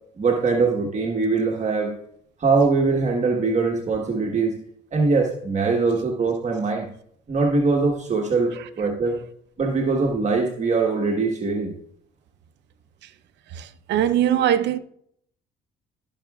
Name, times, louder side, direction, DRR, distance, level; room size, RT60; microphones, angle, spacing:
voice 1, 0.2-1.9 2.4-4.6 4.9-6.9 7.3-9.2 9.6-11.7, right 4 dB, 40° right, 1.4 m, -22 dB
voice 2, 13.5-14.8, right 10 dB, 75° right, 0.8 m, -21 dB
16.0 x 5.9 x 2.4 m
supercardioid pair, 75°, 18 cm